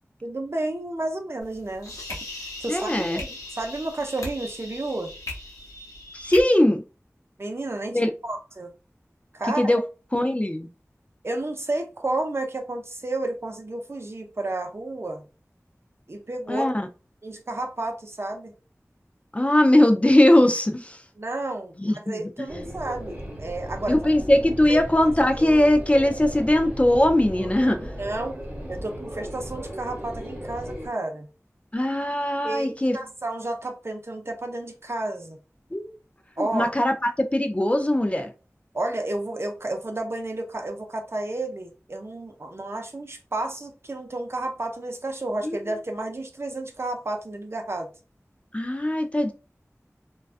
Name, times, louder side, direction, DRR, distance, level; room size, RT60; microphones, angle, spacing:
voice 1, 0.2-2.2 2.6-5.1 7.4-8.7 9.3-9.7 11.2-15.2 16.1-16.7 17.2-18.5 21.2-24.0 24.5-25.6 28.0-28.4 28.7-31.3 32.4-35.4 36.4-36.7 38.7-47.9, right 2 dB, 50° right, 0.5 m, -31 dB
sound 1, 1.4-6.4, left 2 dB, 90° left, 0.6 m, -38 dB
voice 2, 2.7-3.2 6.1-6.8 7.9-8.1 9.6-9.8 10.1-10.7 16.5-16.9 19.3-21.0 21.8-22.3 23.9-27.9 31.7-33.0 35.7-35.9 36.4-38.3 45.4-45.6 48.5-49.3, left 1 dB, 25° left, 0.3 m, -20 dB
sound 2, 22.5-30.9, equal, 25° right, 1.1 m, -36 dB
2.3 x 2.3 x 2.4 m
wide cardioid pair, 50°, 5 cm